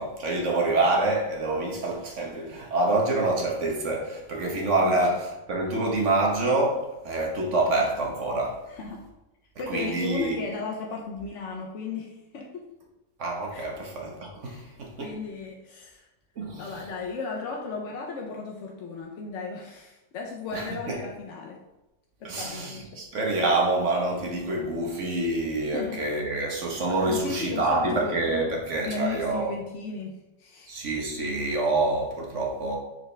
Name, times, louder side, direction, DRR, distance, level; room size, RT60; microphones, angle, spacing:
voice 1, 0.0-8.6 9.7-10.4 13.2-15.1 16.4-16.8 20.5-21.0 22.2-29.5 30.7-32.8, right 2 dB, 45° right, 0 dB, 1.3 m, -26 dB
voice 2, 4.8-5.2 8.7-9.0 9.6-12.7 13.5-13.7 14.4-14.7 15.0-16.1 16.6-21.6 22.2-23.0 25.7-26.0 27.1-28.1 28.8-30.7, left 4 dB, 55° left, -1 dB, 0.8 m, -36 dB
6.7 x 4.7 x 3.3 m, 0.95 s
omnidirectional pair, 1.9 m